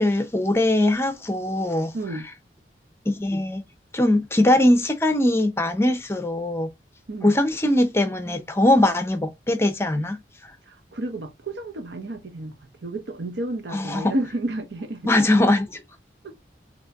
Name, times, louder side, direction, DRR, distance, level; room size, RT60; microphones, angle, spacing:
voice 1, 0.0-1.9 3.1-3.6 3.9-6.7 7.2-10.2 13.7-14.1 15.0-15.8, left 1 dB, 15° left, 0.6 m, -21 dB
voice 2, 1.9-2.3 7.1-7.4 10.7-12.6 12.8-15.1 16.2-16.3, right 1 dB, 80° right, 0.8 m, -31 dB
4.2 x 2.9 x 3.4 m
head